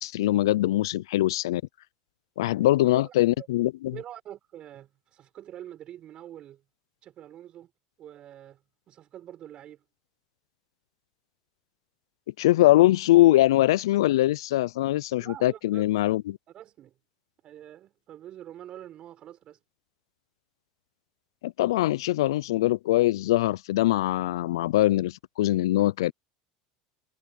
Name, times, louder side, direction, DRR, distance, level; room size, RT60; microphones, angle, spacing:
voice 1, 0.0-1.6 2.4-3.9 12.4-16.4 21.4-26.1, left 15 dB, 85° left, 0.4 m, -22 dB
voice 2, 2.6-3.5 3.9-6.6 7.0-7.7 8.0-8.6 8.9-9.8 15.2-15.8 16.5-16.9 17.4-19.6, right 11 dB, 45° right, 6.7 m, -45 dB
supercardioid pair, 105°, 2 cm